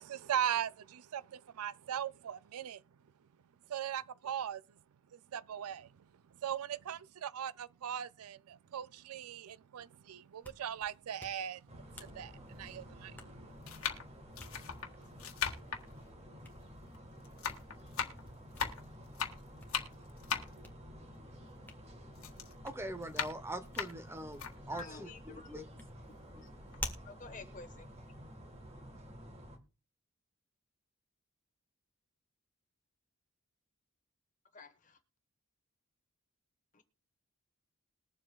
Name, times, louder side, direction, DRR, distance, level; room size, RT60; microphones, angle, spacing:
voice 1, 0.0-2.8 3.7-4.6 5.1-5.9 6.4-13.5, right 9 dB, 85° right, 0.4 m, -39 dB
Hands, 10.2-28.7, left 2 dB, 10° left, 1.2 m, -53 dB
sound 1, 10.8-10.9 11.8-11.9 12.9-13.1 13.6-17.0 17.2-21.8 22.2-24.5 25.0-25.1 25.4-26.4 26.7-26.9, left 7 dB, 75° left, 1.6 m, -39 dB
sound 2, 11.7-29.6, equal, 30° right, 1.6 m, -52 dB
voice 2, 22.6-24.4 24.7-25.7, right 1 dB, 10° right, 0.8 m, -42 dB
voice 3, 24.7-25.6 27.1-27.8 34.5-34.7 36.8-36.9, left 4 dB, 35° left, 1.3 m, -49 dB
21.0 x 7.4 x 2.3 m
head